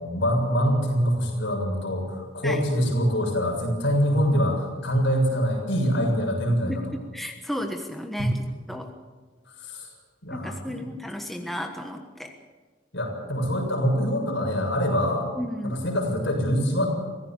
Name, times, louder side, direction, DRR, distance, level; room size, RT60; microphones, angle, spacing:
voice 1, 0.0-6.7 8.2-8.3 9.6-9.9 10.2-10.9 12.9-15.3 15.6-16.9, equal, 60° left, 0 dB, 7.2 m, -24 dB
voice 2, 6.7-8.3 8.7-8.9 10.3-12.3 15.3-15.9, left 1 dB, ahead, 3 dB, 1.3 m, -33 dB
24.5 x 16.5 x 7.5 m, 1.5 s
head